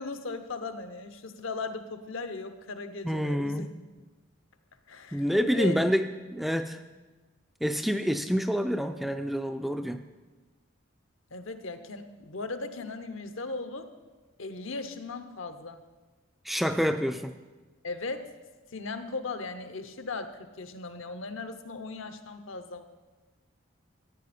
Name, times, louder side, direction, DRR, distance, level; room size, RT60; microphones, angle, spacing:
voice 1, 0.0-3.7 4.9-5.3 5.5-5.8 11.3-13.9 14.4-15.8 17.8-18.3 18.7-22.8, left 3 dB, 75° left, 8 dB, 0.9 m, -37 dB
voice 2, 3.0-3.7 5.1-6.1 6.3-6.8 7.6-10.0 16.5-17.3, equal, ahead, 7 dB, 0.3 m, -27 dB
14.0 x 9.2 x 4.2 m, 1.2 s
head